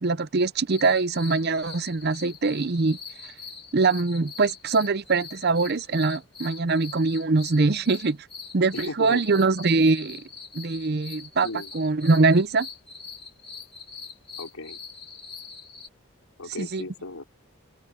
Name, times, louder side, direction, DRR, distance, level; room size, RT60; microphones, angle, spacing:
voice 1, 0.0-3.0 3.7-8.2 8.5-10.2 10.5-11.5 11.7-12.7 16.6-16.8, right 3 dB, 45° right, 0.6 m, -23 dB
sound 1, 0.7-15.9, left 5 dB, 25° left, 2.2 m, -43 dB
voice 2, 8.7-9.2 11.4-11.7 14.4-14.8 16.4-17.2, left 2 dB, 80° left, 3.1 m, -35 dB
open air
head